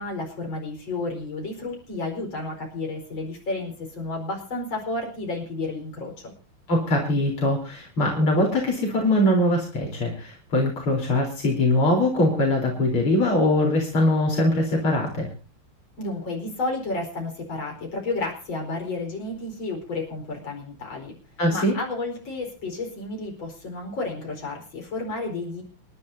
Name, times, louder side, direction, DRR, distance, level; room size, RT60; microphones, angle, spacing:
voice 1, 0.0-6.3 16.0-21.1 21.5-25.6, left 2 dB, 60° left, 1 dB, 5.5 m, -31 dB
voice 2, 6.7-15.3 21.4-21.7, left 1 dB, 80° left, 0 dB, 4.9 m, -22 dB
28.0 x 11.5 x 2.8 m, 0.34 s
omnidirectional pair, 2.4 m